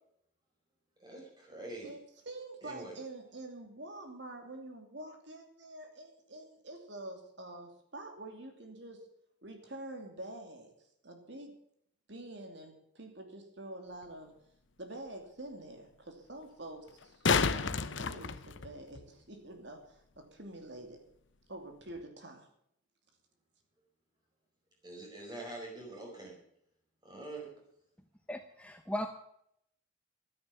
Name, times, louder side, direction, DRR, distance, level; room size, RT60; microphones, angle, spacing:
voice 1, 1.0-1.9 2.6-2.9 24.8-26.3 27.0-27.5, right 2 dB, 20° right, -1 dB, 5.3 m, -44 dB
voice 2, 2.2-9.1 9.4-10.7 11.0-11.5 12.1-14.3 14.8-21.0 21.5-22.5, right 2 dB, 60° right, 4 dB, 2.7 m, -47 dB
sound 1, 14.0-14.1 16.9-19.0 21.9-22.0, left 5 dB, 70° left, 0.8 m, -30 dB
voice 3, 28.3-29.1, left 1 dB, 5° left, 6 dB, 0.8 m, -37 dB
13.0 x 10.5 x 7.1 m, 0.72 s
head